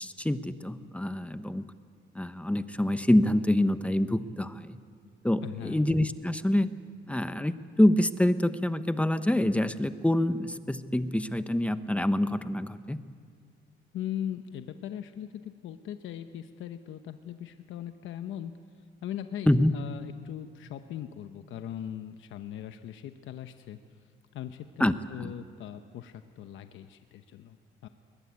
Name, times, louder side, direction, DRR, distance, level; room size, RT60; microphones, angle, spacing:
voice 1, 0.0-1.6 2.2-4.8 5.2-6.7 7.1-13.0 19.5-19.7 24.8-25.3, left 1 dB, 5° left, 11 dB, 1.0 m, -26 dB
voice 2, 5.4-5.8 13.9-18.5 19.0-23.8 24.3-27.6 27.8-27.9, left 10 dB, 80° left, 8 dB, 1.0 m, -39 dB
21.5 x 20.5 x 9.5 m, 2.1 s
cardioid pair, 90°, 20 cm